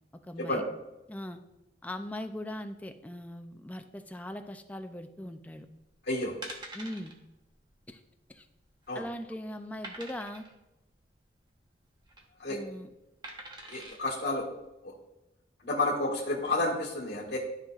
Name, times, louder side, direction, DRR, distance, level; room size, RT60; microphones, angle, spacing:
voice 1, 0.1-0.6 1.1-1.4 1.8-5.7 6.7-7.2 7.9-8.0 8.3-8.5 8.9-10.4 12.5-12.9, left 1 dB, 10° left, 7 dB, 0.5 m, -40 dB
sound 1, 5.8-5.9 6.4-7.1 7.5-7.7 7.9-8.0 8.6-9.1 9.8-10.5 11.8-12.2 13.2-14.0 14.6-14.7, right 1 dB, 25° right, 1.1 m, -44 dB
voice 2, 6.1-6.4 8.9-9.0 12.4-12.6 13.7-14.5 14.8-14.9 15.6-17.4, left 2 dB, 70° left, -3 dB, 1.7 m, -30 dB
12.5 x 5.5 x 2.5 m, 0.99 s
head